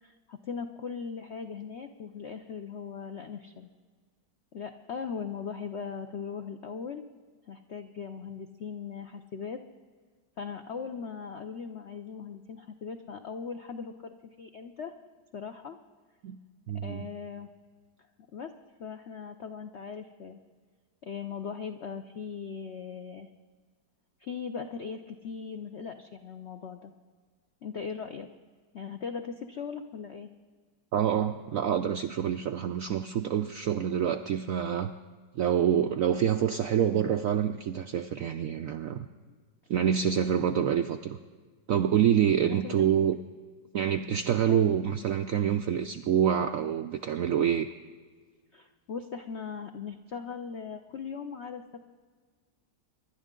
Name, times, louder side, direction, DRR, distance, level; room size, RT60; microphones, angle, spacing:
voice 1, 0.0-3.7 4.5-7.0 7.5-9.6 10.4-14.9 15.3-15.8 16.8-17.5 18.3-18.5 18.8-20.4 21.0-23.3 24.2-26.9 27.6-28.3 28.7-30.3 39.3-39.4 42.4-42.9 44.5-44.7 48.5-51.8, left 6 dB, 70° left, 6 dB, 0.6 m, -39 dB
voice 2, 16.7-17.1 30.9-34.9 35.4-39.1 39.7-41.2 41.7-43.2 43.7-47.7, right 9 dB, 75° right, 8 dB, 0.7 m, -26 dB
25.0 x 11.5 x 3.7 m, 1.6 s
omnidirectional pair, 2.0 m